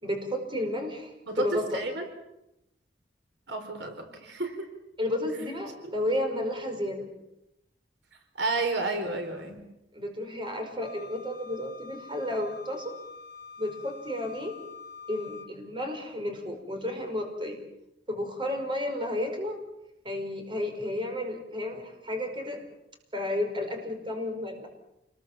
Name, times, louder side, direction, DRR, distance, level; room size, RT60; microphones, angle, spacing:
voice 1, 0.0-1.8 5.0-7.1 9.9-12.9 13.6-14.5 15.1-17.6 18.1-19.6 20.0-22.6 23.1-24.7, left 1 dB, 30° right, 4 dB, 5.3 m, -32 dB
voice 2, 1.7-2.1 3.5-4.7 8.4-9.6, right 2 dB, 75° right, 6 dB, 4.2 m, -31 dB
Wind instrument woodwind instrument, 10.8-15.5, left 5 dB, 65° left, 5.4 m, -46 dB
28.5 x 21.0 x 7.4 m, 0.87 s
head